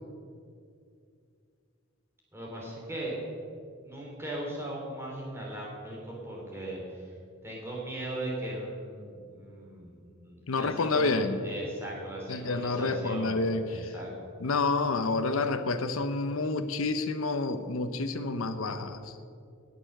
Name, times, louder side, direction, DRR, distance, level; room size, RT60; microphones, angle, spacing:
voice 1, 2.3-3.1 3.8-7.1 7.4-14.1, right 1 dB, 10° right, -3 dB, 3.1 m, -38 dB
voice 2, 10.5-11.4 12.3-13.9 14.4-19.1, left 3 dB, 85° left, 10 dB, 0.8 m, -29 dB
19.0 x 6.9 x 6.6 m, 2.4 s
head